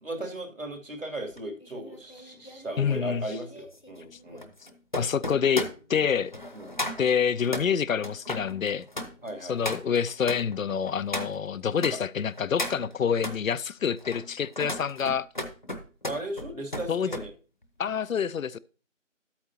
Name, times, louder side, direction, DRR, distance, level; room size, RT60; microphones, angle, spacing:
voice 1, 0.0-4.5 6.5-6.8 9.2-9.6 11.8-12.0 16.1-17.3, right 1 dB, 80° right, 2.4 m, -37 dB
sound 1, 1.3-12.0 12.3-13.4 13.9-17.3 17.6-17.9, left 1 dB, 35° left, 0.7 m, -36 dB
voice 2, 2.8-3.2 5.0-6.3 7.0-8.8 9.5-15.3 16.9-17.1 17.8-18.6, left 7 dB, 90° left, 0.5 m, -27 dB
10.5 x 8.6 x 2.7 m
figure-of-eight pair, 170°, 39 cm